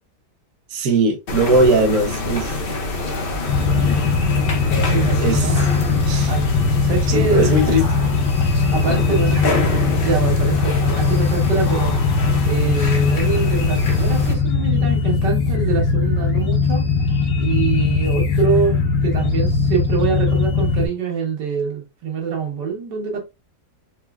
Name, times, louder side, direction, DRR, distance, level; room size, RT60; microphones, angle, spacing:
voice 1, 0.7-2.6 5.2-5.6 6.1-6.3 7.1-7.9, right 2 dB, 65° right, 1.3 m, -19 dB
sound 1, 1.3-14.3, left 2 dB, 45° left, 0.8 m, -26 dB
sound 2, 3.5-20.9, left 4 dB, 65° left, 1.2 m, -19 dB
voice 2, 4.9-5.6 6.3-6.5 6.8-7.6 8.7-12.0 12.5-16.9 17.4-18.8 19.0-23.2, right 6 dB, 85° right, 1.9 m, -24 dB
4.6 x 3.0 x 2.3 m
omnidirectional pair, 1.8 m